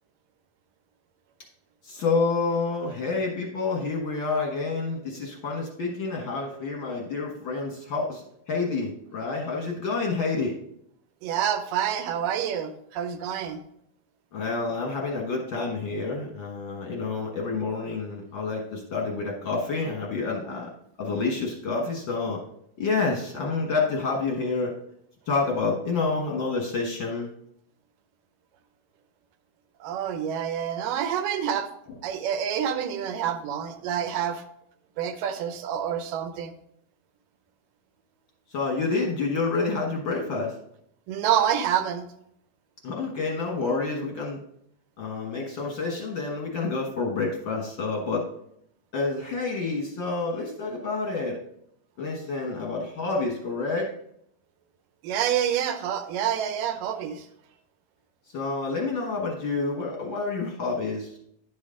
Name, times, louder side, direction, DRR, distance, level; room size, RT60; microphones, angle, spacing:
voice 1, 1.8-10.5 14.3-20.7 21.0-22.4 22.8-24.7 25.3-27.3 38.5-40.5 42.8-44.4 45.0-48.3 48.9-51.4 52.0-53.9 58.3-61.1, left 3 dB, 60° left, 0 dB, 1.2 m, -28 dB
voice 2, 11.2-13.6 29.8-31.7 32.0-34.4 35.0-36.5 41.1-42.0 55.0-57.2, right 9 dB, 80° right, 8 dB, 2.4 m, -27 dB
10.5 x 6.3 x 3.7 m, 0.73 s
omnidirectional pair, 3.8 m